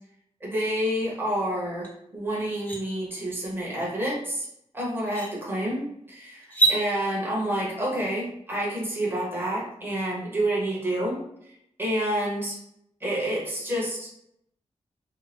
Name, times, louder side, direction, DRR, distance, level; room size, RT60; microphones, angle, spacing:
voice 1, 0.4-4.5 4.7-11.2 11.8-12.6 13.0-14.1, right 1 dB, 20° right, -4 dB, 0.9 m, -28 dB
sound 1, 1.8-1.9 2.4-2.8 4.4-4.5 5.0-5.3 6.4-6.8, right 3 dB, 15° left, 0.6 m, -25 dB
2.6 x 2.1 x 3.3 m, 0.76 s
wide cardioid pair, 180°, 12 cm